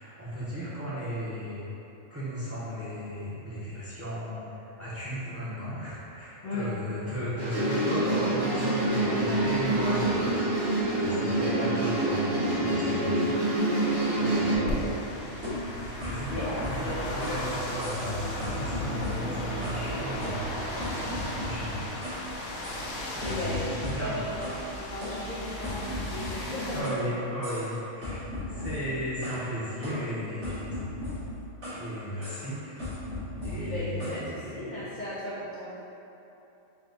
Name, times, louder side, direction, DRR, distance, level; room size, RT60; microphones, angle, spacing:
voice 1, 0.0-1.7 2.1-14.9 16.0-20.5 21.1-22.3 23.1-24.3 26.7-28.2 28.5-30.8 31.7-32.8 33.4-34.9, equal, 15° right, -10 dB, 0.7 m, -36 dB
sound 1, 7.4-14.6, right 1 dB, 40° right, 1.1 m, -26 dB
sound 2, 9.0-11.1 12.4-26.8, equal, 70° left, 1.1 m, -36 dB
voice 2, 9.1-9.4 11.4-11.7 13.4-13.6 14.5-14.9 16.3-17.3 23.2-26.9 28.4-28.7 33.6-35.8, left 1 dB, 50° left, -9 dB, 0.5 m, -36 dB
sound 3, 15.4-17.5 17.8-18.1 18.4-19.9 20.2-22.2 22.6-22.8 23.2-24.6 25.0-27.1 27.4-27.7 28.0-29.4 29.8-31.9 32.2-32.5 32.8-34.2, left 1 dB, 90° right, 2.0 m, -37 dB
4.8 x 2.3 x 3.8 m, 2.9 s
omnidirectional pair, 1.4 m